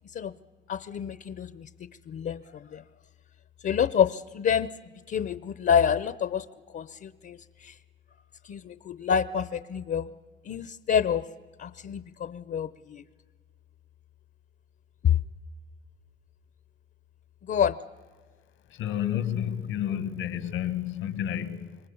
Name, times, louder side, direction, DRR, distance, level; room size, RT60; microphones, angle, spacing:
voice 1, 0.7-2.8 3.6-4.7 5.1-7.8 8.4-10.1 10.4-11.3 11.6-13.0 15.0-15.2 17.4-17.8, left 8 dB, 55° left, 15 dB, 0.8 m, -28 dB
voice 2, 18.8-21.8, left 10 dB, 90° left, 13 dB, 1.6 m, -30 dB
27.0 x 22.5 x 7.1 m, 1.5 s
cardioid pair, 90°, 20 cm